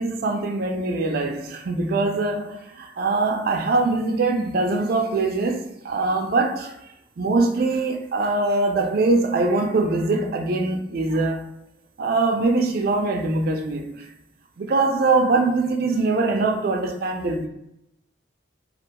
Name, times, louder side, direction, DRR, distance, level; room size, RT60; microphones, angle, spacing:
voice 1, 0.0-6.8 7.2-11.5 12.0-14.1 14.6-17.5, right 3 dB, 50° right, 0.3 m, -22 dB
2.3 x 2.2 x 2.8 m
head